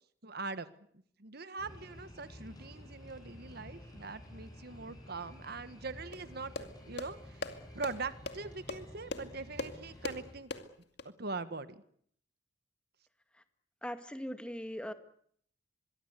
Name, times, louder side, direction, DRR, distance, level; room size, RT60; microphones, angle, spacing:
voice 1, 0.2-0.7 1.2-10.5 11.2-11.8, right 3 dB, 55° right, 12 dB, 1.4 m, -42 dB
sound 1, 1.6-10.3, left 1 dB, 20° left, 7.9 m, -51 dB
sound 2, 6.1-11.1, left 2 dB, 60° left, 2.3 m, -42 dB
voice 2, 13.8-14.9, equal, 5° left, 8 dB, 1.9 m, -40 dB
25.0 x 22.5 x 8.3 m, 0.64 s
head